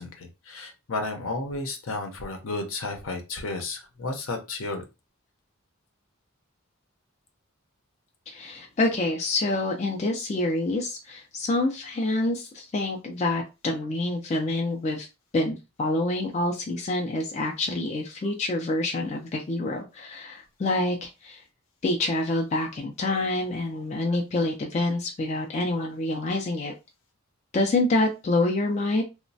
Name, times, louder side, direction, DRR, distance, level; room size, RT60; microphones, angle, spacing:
voice 1, 0.0-4.8, left 2 dB, 70° left, 5 dB, 0.7 m, -32 dB
voice 2, 8.3-15.1 15.3-21.4 21.8-26.7 27.5-29.0, left 2 dB, 30° left, 1 dB, 0.4 m, -27 dB
3.0 x 2.1 x 2.6 m, 0.27 s
head